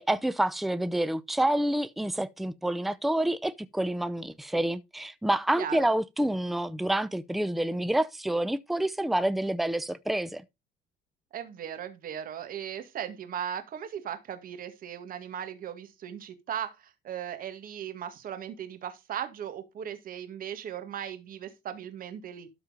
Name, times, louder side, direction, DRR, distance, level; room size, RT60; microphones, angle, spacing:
voice 1, 0.0-10.4, right 1 dB, ahead, 0.6 m, -28 dB
voice 2, 11.3-22.5, right 9 dB, 55° right, 2.1 m, -37 dB
12.5 x 4.5 x 5.1 m
cardioid pair, 110°, 17 cm